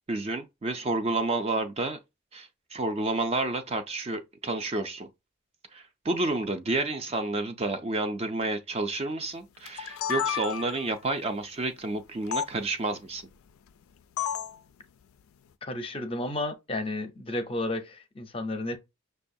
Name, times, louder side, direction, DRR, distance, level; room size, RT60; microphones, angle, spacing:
voice 1, 0.1-2.0 2.3-5.1 5.7-13.3, right 2 dB, 30° right, 0.3 m, -30 dB
sound 1, 9.7-10.9 12.3-12.5 14.2-14.6, left 9 dB, 80° left, 0.3 m, -31 dB
voice 2, 15.6-18.8, left 2 dB, 25° left, 0.5 m, -32 dB
6.1 x 2.2 x 2.6 m
head